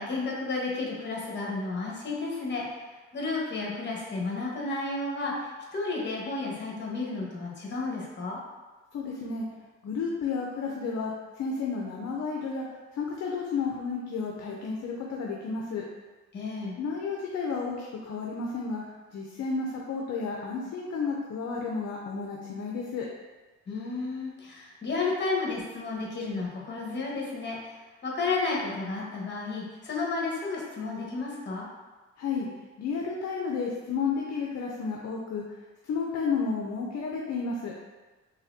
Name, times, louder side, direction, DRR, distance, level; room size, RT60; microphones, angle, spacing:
voice 1, 0.0-2.6 3.1-8.4 16.3-16.8 23.7-27.7 28.0-31.7, left 3 dB, 35° left, -3 dB, 1.3 m, -32 dB
voice 2, 8.9-9.4 9.8-12.6 12.9-15.9 16.8-18.8 19.1-23.1 32.2-32.5 32.8-35.4 35.8-37.7, left 5 dB, 60° left, -2 dB, 0.7 m, -32 dB
4.0 x 3.5 x 2.7 m, 1.2 s
cardioid pair, 90°, 30 cm